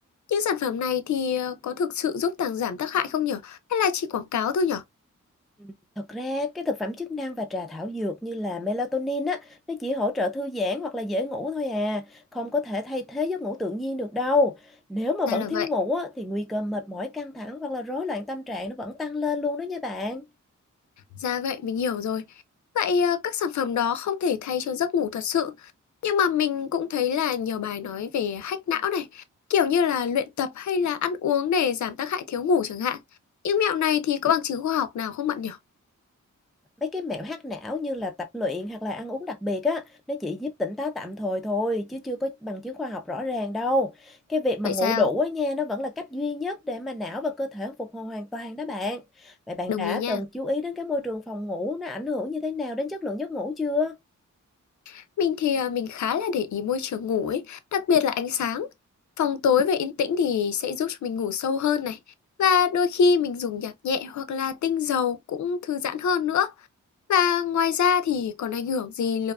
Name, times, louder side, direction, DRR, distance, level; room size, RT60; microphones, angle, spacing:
voice 1, 0.3-4.8 15.3-15.7 21.2-22.2 22.7-25.7 26.0-29.2 29.5-33.0 33.4-35.6 44.6-45.0 49.7-50.2 54.9-58.7 59.2-62.0 62.4-66.5 67.1-69.3, left 7 dB, 65° left, 0.5 m, -25 dB
voice 2, 5.6-20.2 36.8-54.0, left 2 dB, ahead, 0.3 m, -29 dB
2.6 x 2.2 x 2.3 m
wide cardioid pair, 90°, 31 cm